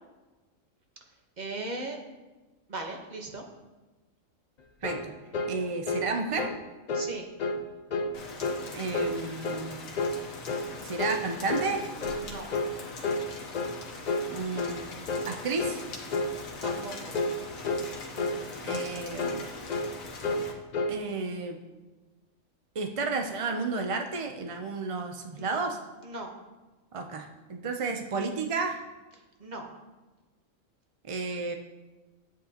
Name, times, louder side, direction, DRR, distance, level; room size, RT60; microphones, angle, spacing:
voice 1, 1.4-2.0 2.7-3.4 6.9-7.3 12.2-12.5 16.6-17.1 25.4-25.6 26.0-26.3 29.4-29.7, right 2 dB, 35° right, 2 dB, 1.2 m, -38 dB
sound 1, 4.8-5.1 5.3-5.6 5.9-6.1 6.4-6.6 6.9-7.1 7.4-7.6 7.9-8.1 8.4-8.6 8.9-9.2 9.4-9.7 10.0-10.2 10.5-10.7 11.0-11.2 11.5-11.7 12.0-12.3 12.5-12.7 13.0-13.3 13.5-13.8 14.1-14.3 14.6-14.8 15.1-15.3 15.6-15.8 16.1-16.3 16.6-16.9 17.1-17.4 17.6-17.9 18.2-18.4 18.7-18.9 19.2-19.4 19.7-19.9 20.2-20.5 20.7-21.0, left 2 dB, 50° left, 0.5 m, -30 dB
voice 2, 4.8-5.1 5.4-6.5 8.7-9.8 10.8-11.8 14.3-14.9 15.3-15.8 18.6-19.4 20.9-21.6 22.7-25.8 26.9-28.8 31.0-31.5, right 4 dB, 50° right, 4 dB, 0.3 m, -32 dB
Rain, 8.1-20.5, left 3 dB, 85° left, 1.6 m, -42 dB
10.0 x 8.5 x 2.9 m, 1.2 s
omnidirectional pair, 1.4 m